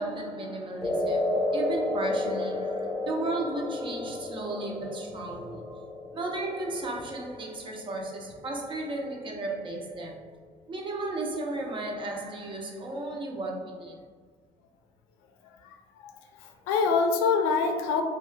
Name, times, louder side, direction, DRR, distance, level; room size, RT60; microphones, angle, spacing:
voice 1, 0.0-5.8 6.1-10.3 10.7-14.0, right 2 dB, 35° right, 0.6 m, -34 dB
sound 1, 0.8-9.2, left 1 dB, 5° right, 1.2 m, -32 dB
voice 2, 16.4-18.0, left 5 dB, 85° left, 0.4 m, -25 dB
3.0 x 2.2 x 2.2 m
supercardioid pair, 85°, 14 cm